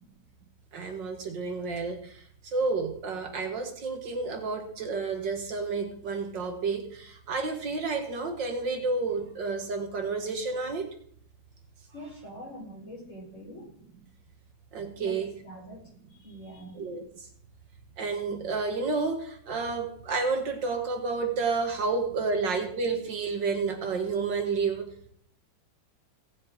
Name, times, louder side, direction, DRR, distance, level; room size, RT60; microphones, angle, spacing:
voice 1, 0.7-2.1 2.4-10.9 14.7-15.3 16.7-17.0 18.0-24.9, right 4 dB, 60° right, 5 dB, 2.3 m, -30 dB
voice 2, 11.9-13.7 15.0-15.2 15.4-15.8 16.2-16.8, equal, 35° left, -3 dB, 5.1 m, -44 dB
18.0 x 7.1 x 4.8 m, 0.63 s
omnidirectional pair, 2.3 m